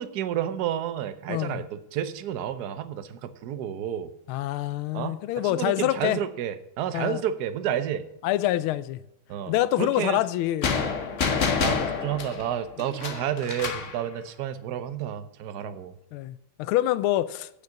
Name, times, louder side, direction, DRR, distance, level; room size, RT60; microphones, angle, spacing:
voice 1, 0.0-4.1 4.9-8.0 9.3-10.2 11.6-16.0, right 10 dB, 60° right, 1.1 m, -31 dB
voice 2, 1.3-1.6 4.3-6.2 6.9-7.2 8.2-9.0 9.5-10.7 16.1-17.5, left 14 dB, 90° left, 1.4 m, -26 dB
sound 1, 10.6-14.0, left 5 dB, 45° left, 1.1 m, -27 dB
8.5 x 6.6 x 7.1 m
omnidirectional pair, 2.3 m